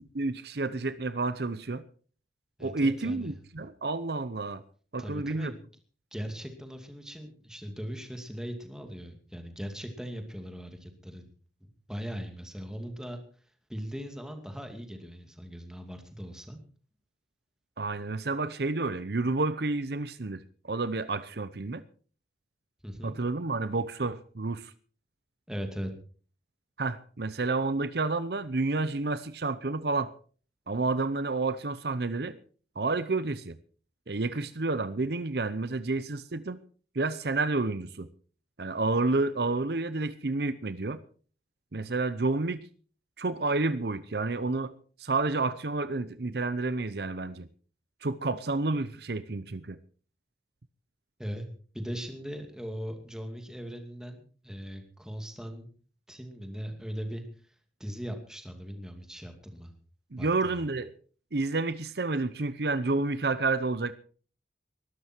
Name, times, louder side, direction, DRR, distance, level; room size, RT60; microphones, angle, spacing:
voice 1, 0.1-1.8 2.6-4.6 4.9-5.5 17.8-21.8 23.0-24.7 26.8-30.1 30.7-32.4 32.8-33.6 34.1-36.6 36.9-38.1 38.6-41.0 41.7-42.6 43.2-44.7 45.0-47.5 48.0-49.8 60.1-60.9 61.3-63.9, right 3 dB, 60° right, 14 dB, 0.8 m, -30 dB
voice 2, 2.6-3.3 5.0-5.6 6.1-11.3 11.6-13.2 13.7-16.6 22.8-23.2 25.5-25.9 51.2-51.5 51.7-55.7 56.1-57.2 57.8-59.7 60.2-60.6, equal, 5° right, 5 dB, 2.5 m, -39 dB
20.5 x 12.5 x 4.5 m, 0.42 s
head